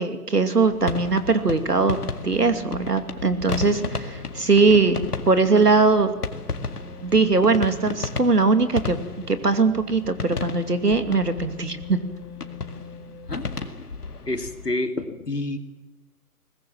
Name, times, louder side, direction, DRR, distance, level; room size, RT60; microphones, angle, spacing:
voice 1, 0.0-2.0 2.2-6.2 7.0-9.0 9.3-12.0, right 4 dB, 85° right, 9 dB, 2.6 m, -20 dB
sound 1, 0.7-14.7, left 4 dB, 75° left, 2.1 m, -34 dB
sound 2, 1.9-13.3, left 4 dB, 20° left, 2.9 m, -45 dB
voice 2, 13.3-13.9 14.3-15.6, left 2 dB, 90° left, 7 dB, 2.9 m, -29 dB
22.5 x 20.0 x 7.5 m, 1.2 s
figure-of-eight pair, 135°, 46 cm